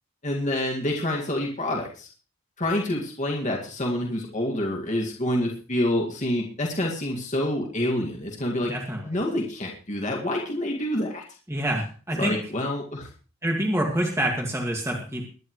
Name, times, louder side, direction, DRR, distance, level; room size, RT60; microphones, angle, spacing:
voice 1, 0.2-2.1 2.6-8.7 9.0-11.2 12.2-13.1, left 1 dB, 35° left, -1 dB, 2.1 m, -27 dB
voice 2, 8.6-9.2 11.5-12.4 13.4-15.3, right 1 dB, 10° right, 0 dB, 2.0 m, -27 dB
22.0 x 10.5 x 3.2 m, 0.38 s
head